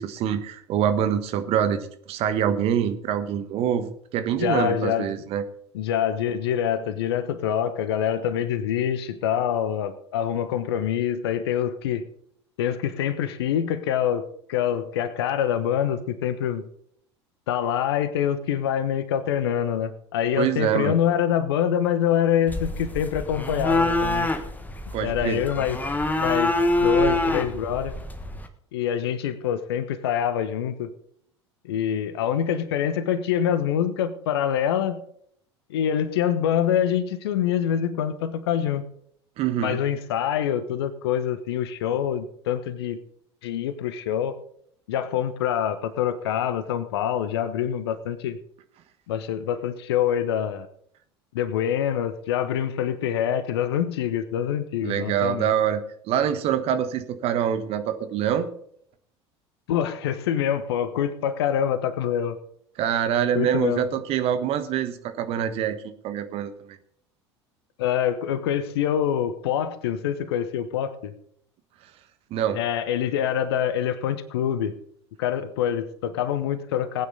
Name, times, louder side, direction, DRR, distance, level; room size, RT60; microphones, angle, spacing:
voice 1, 0.0-5.4 20.4-21.0 24.9-25.4 39.4-39.8 54.8-55.8 56.1-58.5 62.8-66.8 72.3-72.6, right 9 dB, 45° right, 10 dB, 1.4 m, -25 dB
voice 2, 4.3-5.1 5.7-12.1 12.6-16.7 17.5-24.3 25.0-25.8 26.2-26.5 26.8-27.9 28.7-30.9 31.6-35.0 35.7-38.8 39.6-43.0 43.4-44.3 44.9-48.4 49.1-50.7 51.3-55.5 59.7-62.4 63.3-63.9 67.8-71.1 72.5-74.7 75.2-77.1, left 9 dB, 60° left, 13 dB, 1.2 m, -25 dB
sound 1, 22.5-28.5, left 2 dB, 10° left, 1.4 m, -25 dB
19.0 x 9.2 x 4.1 m, 0.66 s
figure-of-eight pair, 70°, 14 cm